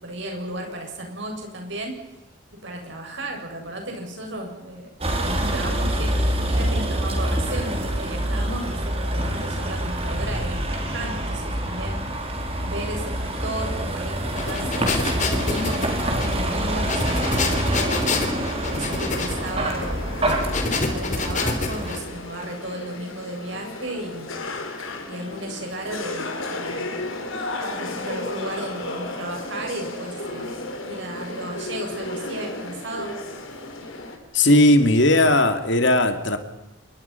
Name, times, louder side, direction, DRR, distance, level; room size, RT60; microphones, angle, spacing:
voice 1, 0.0-2.1 2.6-4.9 5.2-12.4 12.6-18.1 18.6-20.1 20.7-24.3 25.1-27.0 27.6-30.6 30.9-33.1, right 1 dB, 60° right, 1 dB, 7.4 m, -34 dB
Vehicle, 5.0-22.0, right 1 dB, 30° right, 4.1 m, -26 dB
sound 1, 14.2-22.0, left 3 dB, 35° left, 3.5 m, -27 dB
sound 2, 18.0-34.2, left 2 dB, 80° left, 4.1 m, -34 dB
voice 2, 34.3-36.4, left 1 dB, 60° left, 8 dB, 2.5 m, -17 dB
27.5 x 23.5 x 5.9 m, 0.94 s
head